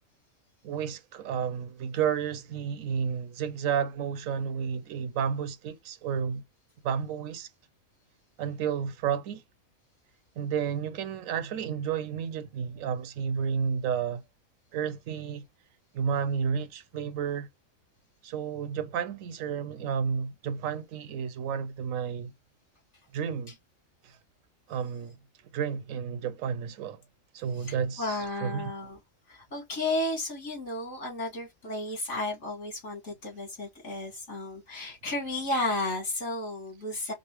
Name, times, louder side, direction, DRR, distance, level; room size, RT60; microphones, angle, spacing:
voice 1, 0.6-6.4 6.8-7.5 8.4-9.4 10.4-14.2 14.7-15.4 15.9-17.5 18.2-22.3 23.1-23.6 24.0-24.2 24.7-25.2 25.5-27.0 27.3-28.7, right 7 dB, 85° right, 1.0 m, -31 dB
voice 2, 27.6-29.0 29.3-37.1, left 2 dB, 60° left, 2.5 m, -33 dB
5.3 x 2.0 x 3.0 m
omnidirectional pair, 1.3 m